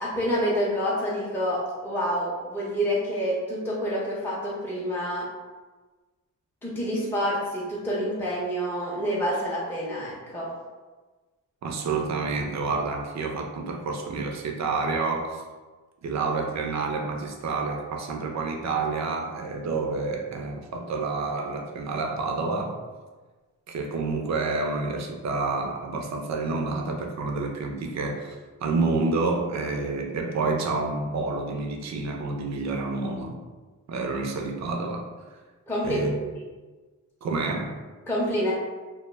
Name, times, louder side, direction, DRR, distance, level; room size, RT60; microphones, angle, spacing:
voice 1, 0.0-5.3 6.6-10.5 35.7-36.0 38.1-38.5, equal, 5° left, -6 dB, 0.5 m, -27 dB
voice 2, 11.6-15.4 16.0-22.8 23.7-28.4 28.6-33.4 33.9-35.1 35.8-36.3 37.2-37.8, right 3 dB, 50° right, 2 dB, 0.5 m, -28 dB
2.1 x 2.1 x 3.1 m, 1.3 s
cardioid pair, 85°, 35 cm